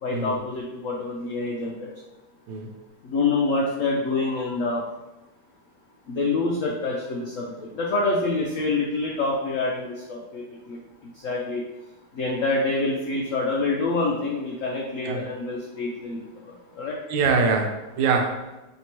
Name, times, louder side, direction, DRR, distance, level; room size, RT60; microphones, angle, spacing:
voice 1, 0.0-1.9 3.0-4.8 6.1-10.8 11.2-11.6 12.1-16.2 16.4-17.0, left 3 dB, 85° left, -1 dB, 0.7 m, -26 dB
voice 2, 17.1-18.6, right 4 dB, 85° right, 3 dB, 1.4 m, -24 dB
4.5 x 3.3 x 2.9 m, 1.0 s
omnidirectional pair, 2.0 m